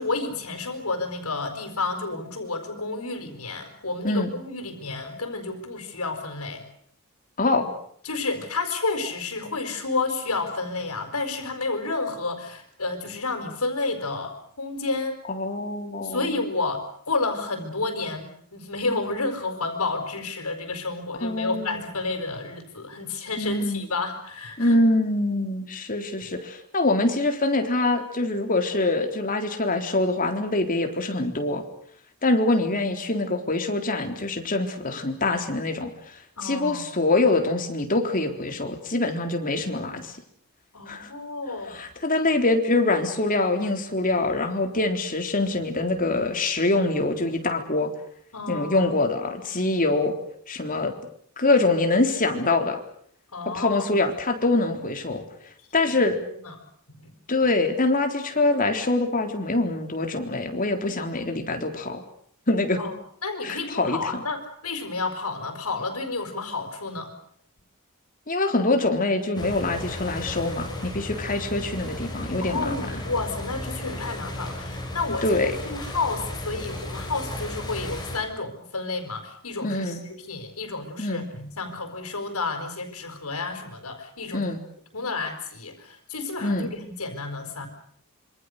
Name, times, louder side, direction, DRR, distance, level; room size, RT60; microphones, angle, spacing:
voice 1, 0.0-6.7 8.0-15.2 16.0-16.8 17.1-24.8 32.5-32.9 36.4-36.9 40.7-41.7 48.3-48.9 53.3-54.0 56.4-56.6 56.9-57.1 62.8-62.9 63.2-67.1 72.4-84.5 84.9-87.7, left 3 dB, 90° left, 3 dB, 4.9 m, -31 dB
voice 2, 7.4-7.7 15.3-16.3 21.2-21.8 23.4-23.8 24.6-31.6 32.2-35.9 36.4-40.1 40.9-41.1 41.7-47.9 48.5-50.1 50.5-50.9 51.4-52.8 53.5-55.2 55.7-56.2 57.3-62.0 62.5-62.8 63.4-64.2 68.3-73.0 75.2-75.5 79.6-80.0 81.0-81.3 84.3-84.6 86.4-86.7, left 2 dB, 40° left, 5 dB, 3.7 m, -24 dB
sound 1, 69.3-78.2, left 1 dB, 20° left, 6.7 m, -34 dB
27.0 x 25.0 x 6.6 m, 0.65 s
head